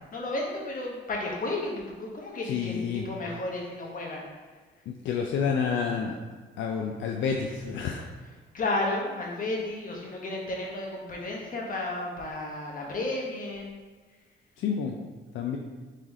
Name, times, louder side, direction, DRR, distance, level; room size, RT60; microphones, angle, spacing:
voice 1, 0.1-4.2 8.5-13.7, left 2 dB, 45° left, -1 dB, 1.1 m, -32 dB
voice 2, 2.4-3.1 4.9-6.1 6.6-8.1 14.6-14.9 15.3-15.6, left 6 dB, 75° left, 1 dB, 0.4 m, -29 dB
3.8 x 3.2 x 4.1 m, 1.4 s
cardioid pair, 90°, 20 cm